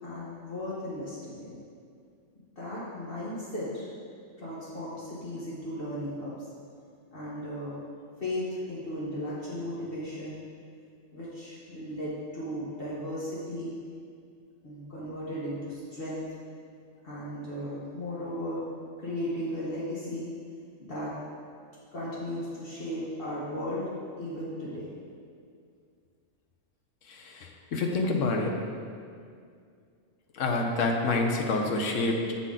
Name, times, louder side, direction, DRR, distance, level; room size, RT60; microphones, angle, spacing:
voice 1, 0.0-1.6 2.6-3.9 4.4-6.4 7.1-7.8 8.2-10.4 11.1-13.7 14.6-16.3 17.0-18.6 19.0-20.3 20.8-21.1 21.9-23.9 24.2-24.9, left 1 dB, 50° left, -8 dB, 1.3 m, -35 dB
voice 2, 27.1-28.5 30.4-32.3, left 3 dB, 75° left, 2 dB, 1.1 m, -27 dB
8.7 x 4.1 x 3.7 m, 2.3 s
omnidirectional pair, 1.3 m